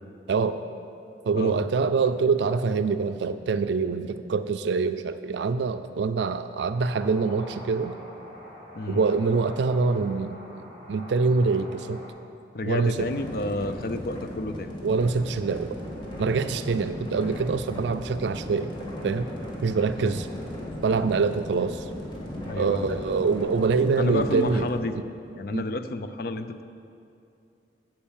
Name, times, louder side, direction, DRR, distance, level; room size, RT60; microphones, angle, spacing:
voice 1, 0.3-0.6 1.3-7.9 8.9-10.4 10.9-12.0 12.6-13.1 14.8-15.8 16.2-18.7 19.0-19.3 19.6-20.3 20.8-21.9 22.6-24.7 25.5-25.6, right 4 dB, 80° right, 11 dB, 0.4 m, -25 dB
voice 2, 1.3-1.7 8.7-9.0 12.5-14.7 19.9-20.2 22.5-23.0 24.0-25.0 25.4-26.6, left 2 dB, 55° left, 10 dB, 0.5 m, -30 dB
sound 1, 6.7-12.1, right 1 dB, 90° left, 3.0 m, -44 dB
sound 2, 13.0-24.8, left 1 dB, 25° left, 1.6 m, -37 dB
8.7 x 7.8 x 7.3 m, 2.6 s
head